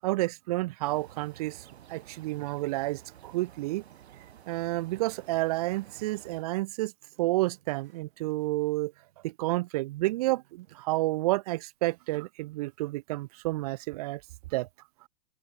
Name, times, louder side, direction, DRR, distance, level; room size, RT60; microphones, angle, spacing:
voice 1, 0.0-3.8 4.5-6.9 7.2-8.9 9.2-14.2 14.5-14.7, right 19 dB, 35° right, 0.7 m, -30 dB
sound 1, 0.8-6.5, right 10 dB, 75° right, 5.2 m, -52 dB
sound 2, 7.0-9.5 9.7-11.0 11.3-11.4 12.7-12.8, right 13 dB, 60° right, 4.7 m, -64 dB
open air
hypercardioid pair, 160°, 32 cm